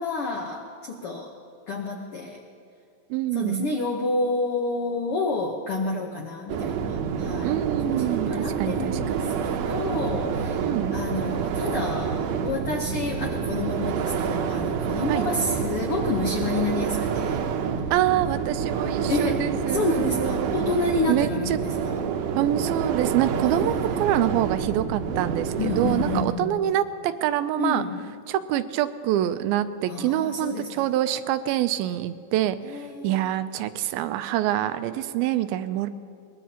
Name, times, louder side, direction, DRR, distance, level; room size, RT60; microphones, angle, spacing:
voice 1, 0.0-1.3 1.7-2.4 3.3-7.5 7.8-10.6 10.9-17.4 19.1-22.0 23.3-23.9 25.6-26.7 27.6-28.0 29.9-30.8 32.6-33.3, left 3 dB, 90° left, 1 dB, 1.2 m, -29 dB
voice 2, 3.1-3.7 7.4-9.3 10.6-11.0 15.1-15.3 17.9-20.6 21.1-21.6 22.4-27.8 28.3-35.9, right 12 dB, 90° right, 11 dB, 2.5 m, -26 dB
sound 1, 6.5-26.2, right 6 dB, 75° right, 2.1 m, -28 dB
22.0 x 20.5 x 2.9 m, 2.3 s
omnidirectional pair, 4.2 m